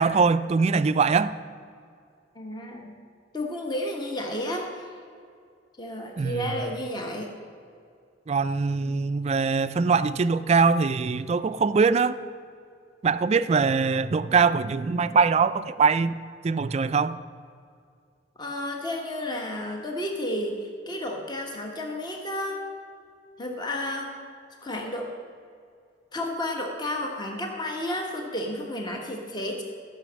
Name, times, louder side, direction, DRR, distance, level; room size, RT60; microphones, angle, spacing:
voice 1, 0.0-1.3 6.2-6.6 8.3-12.2 13.0-16.1 16.4-17.2, right 5 dB, 35° right, 0.3 m, -22 dB
voice 2, 2.3-3.0 3.3-4.9 5.8-7.3 18.4-22.6 23.4-24.1 24.6-25.1 26.1-29.6, left 1 dB, 25° left, 1.2 m, -32 dB
13.5 x 6.1 x 7.4 m
head